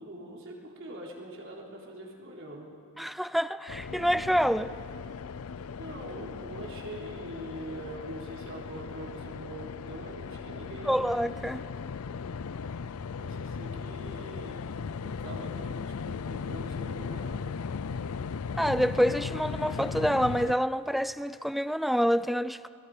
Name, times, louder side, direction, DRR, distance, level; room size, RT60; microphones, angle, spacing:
voice 1, 0.0-2.8 5.8-11.0 13.2-14.6 15.0-17.6, right 1 dB, 60° right, 3.9 m, -43 dB
voice 2, 3.0-4.7 10.8-11.6 18.6-22.7, equal, ahead, 0.4 m, -27 dB
sound 1, 3.7-20.5, left 5 dB, 70° left, 0.5 m, -37 dB
29.5 x 21.5 x 5.0 m
head